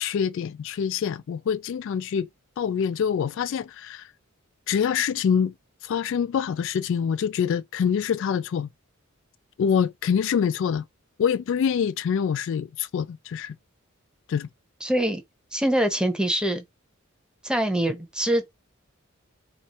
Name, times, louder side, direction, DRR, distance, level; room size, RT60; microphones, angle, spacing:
voice 1, 0.0-2.3 2.6-4.1 4.7-5.5 5.8-8.7 9.6-10.8 11.2-13.6 14.3-14.5, left 7 dB, 65° left, 0.3 m, -25 dB
voice 2, 14.8-15.2 15.5-16.6 17.4-18.5, right 1 dB, 5° right, 0.8 m, -24 dB
3.1 x 3.1 x 4.2 m
head